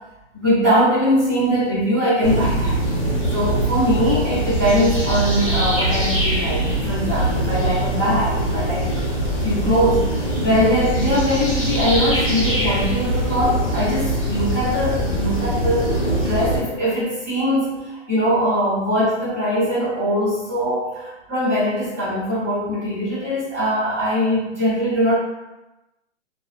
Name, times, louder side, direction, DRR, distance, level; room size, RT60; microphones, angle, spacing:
voice 1, 0.3-2.7 3.3-9.1 9.4-25.2, equal, 15° right, -15 dB, 0.7 m, -21 dB
sound 1, 2.2-16.6, right 1 dB, 30° left, 0.6 m, -22 dB
2.8 x 2.3 x 2.3 m, 0.99 s
hypercardioid pair, 180°, 36 cm